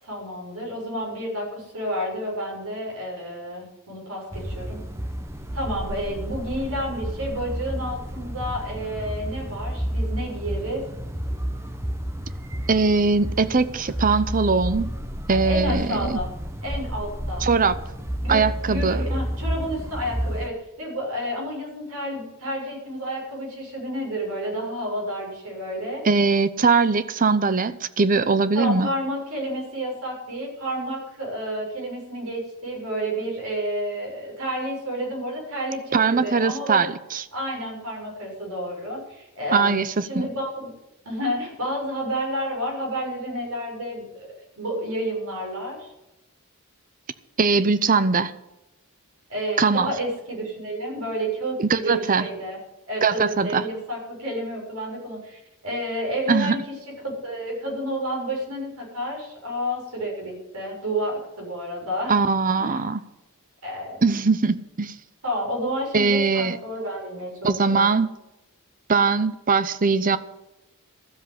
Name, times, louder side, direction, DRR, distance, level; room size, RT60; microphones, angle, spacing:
voice 1, 0.0-4.8 5.5-10.9 15.3-16.3 16.6-17.5 18.2-26.0 28.5-36.8 37.3-40.7 41.1-44.3 44.6-45.9 49.3-52.6 52.9-56.8 57.2-62.2 62.6-62.8 63.6-64.0 65.2-67.9, equal, 90° right, 6.9 m, -30 dB
sound 1, 4.3-20.5, equal, 10° right, 1.0 m, -31 dB
voice 2, 12.7-14.9 15.3-16.2 17.4-17.8 18.3-19.1 26.0-28.9 35.9-37.3 39.5-40.3 47.4-48.3 49.6-49.9 51.6-52.3 53.0-53.7 56.3-56.6 62.1-63.0 64.0-64.9 65.9-66.6 67.4-68.1 68.9-70.2, right 4 dB, 40° right, 0.7 m, -21 dB
13.5 x 7.6 x 9.9 m
head